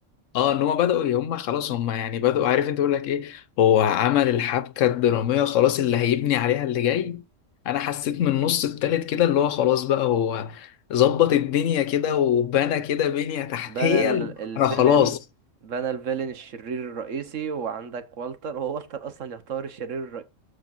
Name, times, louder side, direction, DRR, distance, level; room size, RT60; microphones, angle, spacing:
voice 1, 0.3-7.2 7.6-15.2, left 10 dB, 80° left, 1.1 m, -22 dB
voice 2, 13.7-15.2 15.6-20.2, right 6 dB, 80° right, 1.5 m, -31 dB
13.5 x 5.1 x 2.6 m
omnidirectional pair, 1.3 m